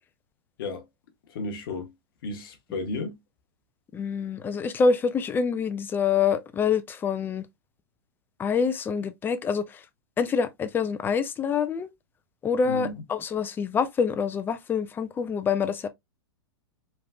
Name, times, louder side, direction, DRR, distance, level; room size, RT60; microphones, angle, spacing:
voice 1, 1.3-1.9 2.2-3.2 12.6-12.9, left 3 dB, 60° left, 1.0 m, -33 dB
voice 2, 3.9-7.5 8.4-9.8 10.2-11.9 12.4-15.9, left 6 dB, 15° left, 0.4 m, -26 dB
3.3 x 2.5 x 2.3 m
hypercardioid pair, 110°, 13 cm